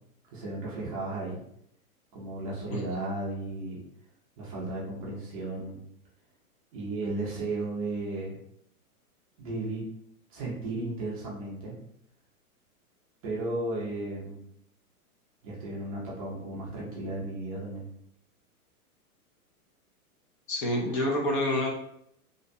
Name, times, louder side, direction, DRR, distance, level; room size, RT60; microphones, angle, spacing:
voice 1, 0.3-1.4 2.1-3.8 4.4-5.8 6.7-8.4 9.4-9.9 10.3-11.7 13.2-14.4 15.4-17.9, right 2 dB, 25° right, -5 dB, 0.5 m, -34 dB
voice 2, 20.5-21.7, left 1 dB, 35° left, -1 dB, 0.5 m, -27 dB
2.6 x 2.0 x 2.5 m, 0.73 s
hypercardioid pair, 140°, 44 cm